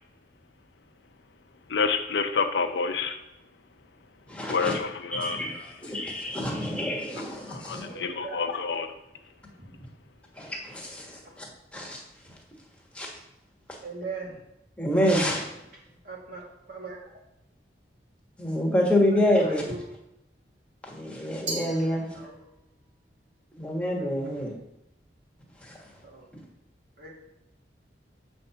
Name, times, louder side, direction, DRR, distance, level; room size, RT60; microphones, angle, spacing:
voice 1, 1.7-3.2 4.5-5.4 7.2-8.9, left 5 dB, 70° left, 6 dB, 0.7 m, -28 dB
voice 2, 4.3-4.8 5.1-7.9 10.3-12.0 12.3-12.4 12.9-13.1 14.8-15.5 18.4-19.6 20.8-22.0 23.6-24.5 25.6-25.9, equal, 5° left, -2 dB, 1.4 m, -27 dB
voice 3, 7.8-8.4 9.7-9.8 13.8-14.4 15.7-16.4 16.7-17.0 19.1-19.9 21.7-22.4 24.0-24.3 26.0-26.3 27.0-27.1, right 3 dB, 55° right, -3 dB, 2.2 m, -41 dB
Glass, 21.5-22.7, right 2 dB, 85° right, 1.9 m, -37 dB
7.6 x 4.3 x 5.7 m, 0.85 s
head